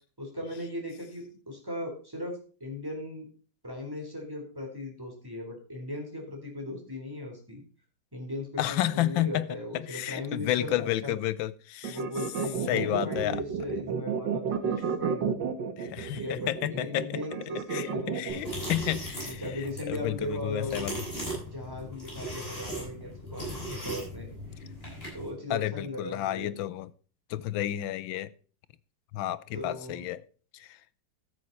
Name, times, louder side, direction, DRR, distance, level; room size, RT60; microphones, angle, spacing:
voice 1, 0.2-3.3 3.6-7.6 8.1-11.2 11.8-15.3 16.1-18.6 19.2-20.9 21.5-24.3 25.1-26.5 29.5-30.1, left 1 dB, 10° right, 3.8 m, -38 dB
voice 2, 8.6-9.5 9.7-12.0 12.7-13.4 15.8-17.2 17.7-17.9 18.1-21.0 25.5-26.9 27.3-28.3 29.1-30.2 30.5-30.8, left 13 dB, 85° left, 1.5 m, -31 dB
sound 1, 11.8-18.6, right 7 dB, 70° right, 1.8 m, -32 dB
sound 2, 18.3-25.3, right 1 dB, 30° left, 7.4 m, -38 dB
13.5 x 7.7 x 4.2 m
omnidirectional pair, 2.1 m